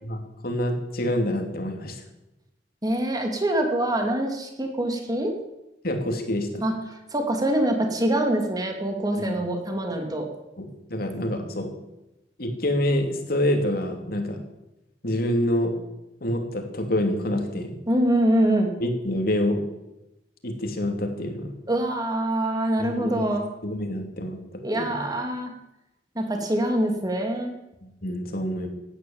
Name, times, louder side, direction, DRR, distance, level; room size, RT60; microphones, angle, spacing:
voice 1, 0.0-2.0 5.8-6.6 9.2-9.4 10.6-11.7 12.4-14.4 15.0-15.8 16.2-17.7 18.8-19.6 20.4-21.5 22.8-23.3 23.6-24.4 24.8-25.0 27.8-28.7, left 1 dB, 55° left, 4 dB, 2.9 m, -27 dB
voice 2, 2.8-5.3 6.6-6.7 7.1-10.3 17.9-18.7 21.7-23.5 24.6-25.5 26.1-27.5, right 1 dB, 20° right, 3 dB, 2.8 m, -24 dB
17.0 x 11.0 x 7.3 m, 0.94 s
head